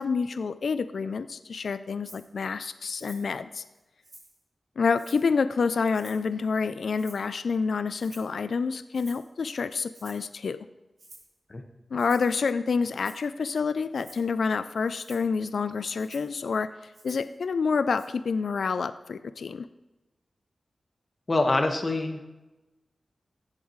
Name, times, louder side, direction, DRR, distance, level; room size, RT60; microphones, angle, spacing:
voice 1, 0.0-3.6 4.8-10.6 11.9-19.7, left 5 dB, 80° left, 13 dB, 0.3 m, -28 dB
Rattle (instrument), 2.0-2.3 3.0-3.3 3.7-4.4 4.9-5.3 5.9-6.3 6.9-7.4 8.0-8.3 8.9-9.3 9.9-10.3 11.0-11.3 12.0-12.4 12.9-13.3 13.9-14.3 14.9-15.3 15.9-16.3 16.9-17.3 17.9-18.0, right 2 dB, 70° right, 3.6 m, -51 dB
voice 2, 21.3-22.3, left 2 dB, 45° left, 4 dB, 1.4 m, -25 dB
15.0 x 7.4 x 3.1 m, 1.1 s
cardioid pair, 45°, 0 cm